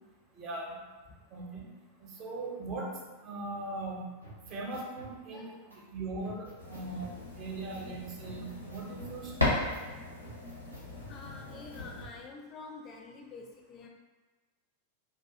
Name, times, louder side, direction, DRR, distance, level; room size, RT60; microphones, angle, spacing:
voice 1, 0.3-0.8 1.3-1.7 2.0-2.9 3.2-4.1 4.5-9.6, right 2 dB, 35° right, -2 dB, 0.6 m, -40 dB
sound 1, 4.2-5.1 5.7-5.8 6.2-7.2 7.7-7.9 8.2-9.2 9.7-9.9 10.2-11.2 11.7-12.2, right 2 dB, 90° right, 0.7 m, -50 dB
voice 2, 5.3-5.6 11.1-13.9, left 3 dB, 30° left, 1 dB, 0.4 m, -47 dB
sound 2, 6.6-12.0, left 2 dB, 85° left, 0.5 m, -36 dB
2.3 x 2.3 x 2.6 m, 1.3 s
figure-of-eight pair, 90°, 0 cm